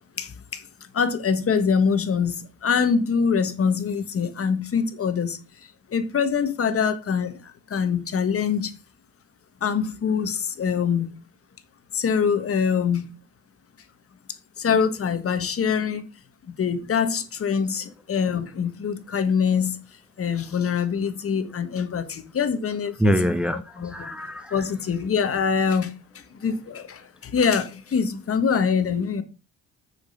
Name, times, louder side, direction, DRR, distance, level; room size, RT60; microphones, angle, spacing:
voice 1, 0.2-0.6 0.9-5.4 5.9-7.4 7.7-8.7 9.6-11.1 11.9-13.1 14.6-16.0 16.6-19.8 20.2-23.2 23.8-23.9 24.5-25.9 26.3-29.2, left 6 dB, 50° left, 1.5 m, -24 dB
voice 2, 23.0-24.7, equal, 5° right, 0.8 m, -25 dB
6.8 x 6.2 x 5.7 m
cardioid pair, 90°, 30 cm